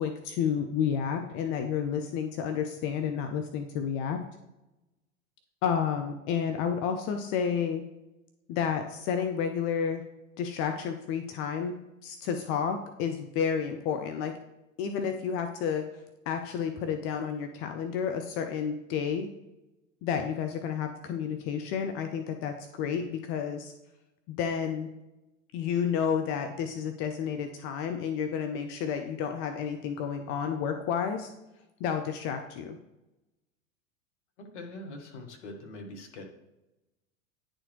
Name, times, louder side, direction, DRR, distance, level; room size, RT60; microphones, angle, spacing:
voice 1, 0.0-4.2 5.6-7.8 8.5-10.0 10.4-11.8 12.0-14.3 14.8-15.9 16.3-19.3 20.0-23.7 24.3-24.9 25.5-31.3 31.8-32.8, left 7 dB, 35° left, 6 dB, 0.5 m, -31 dB
voice 2, 34.4-36.3, left 2 dB, 60° left, 3 dB, 1.3 m, -43 dB
9.9 x 4.3 x 3.2 m, 0.96 s
figure-of-eight pair, 85°, 40 cm